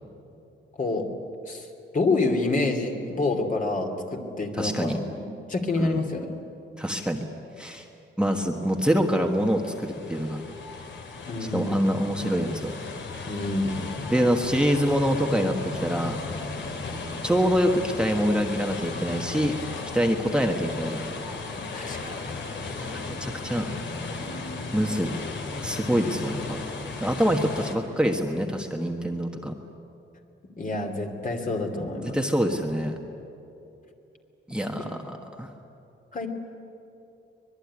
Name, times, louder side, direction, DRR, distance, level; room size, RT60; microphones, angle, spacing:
voice 1, 1.9-5.0 5.5-6.3 11.3-12.0 13.3-13.8 21.7-22.1 30.6-32.2 34.8-34.9 36.1-36.3, left 2 dB, 40° left, 3 dB, 2.8 m, -27 dB
voice 2, 4.6-5.0 5.8-6.0 6.8-7.2 7.6-7.8 8.2-10.4 11.5-12.7 14.1-16.2 17.2-19.5 19.9-21.0 22.9-23.7 24.7-25.1 25.6-26.6 27.0-29.5 32.1-32.9 34.5-35.5, equal, 5° right, 2 dB, 1.4 m, -25 dB
sound 1, 8.7-27.7, left 3 dB, 65° left, 2.8 m, -35 dB
24.0 x 21.5 x 9.8 m, 2.8 s
wide cardioid pair, 140°, 21 cm